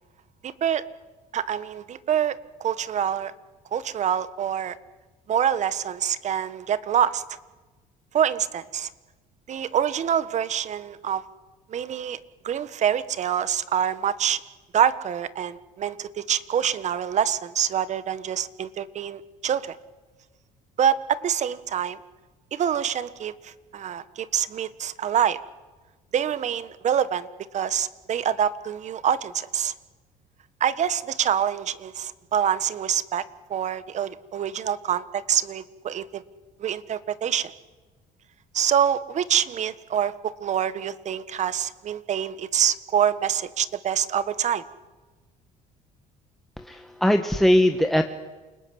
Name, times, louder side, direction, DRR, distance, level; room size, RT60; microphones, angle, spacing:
voice 1, 0.4-0.8 1.3-3.3 3.7-4.8 5.3-7.2 8.1-8.9 9.5-11.2 11.7-12.2 12.4-14.4 14.7-19.8 20.8-22.0 22.5-25.4 26.1-27.3 27.5-29.7 30.6-33.2 33.5-36.2 36.6-37.5 38.5-44.6, right 9 dB, 50° right, 15 dB, 1.5 m, -26 dB
voice 2, 46.6-48.1, left 1 dB, ahead, 5 dB, 1.6 m, -20 dB
28.5 x 20.0 x 9.8 m, 1.3 s
cardioid pair, 95°, 15 cm